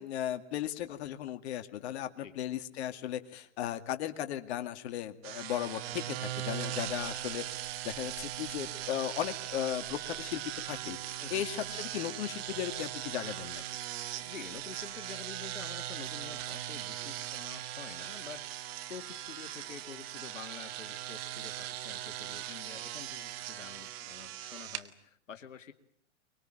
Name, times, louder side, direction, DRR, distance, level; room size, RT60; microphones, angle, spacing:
voice 1, 0.0-7.4 7.8-13.6, left 11 dB, 60° left, 8 dB, 2.2 m, -36 dB
sound 1, 5.2-24.8, right 13 dB, 50° right, 2.1 m, -40 dB
voice 2, 14.1-25.7, left 7 dB, 85° left, 7 dB, 2.2 m, -48 dB
24.5 x 22.0 x 9.1 m, 0.69 s
hypercardioid pair, 120°, 38 cm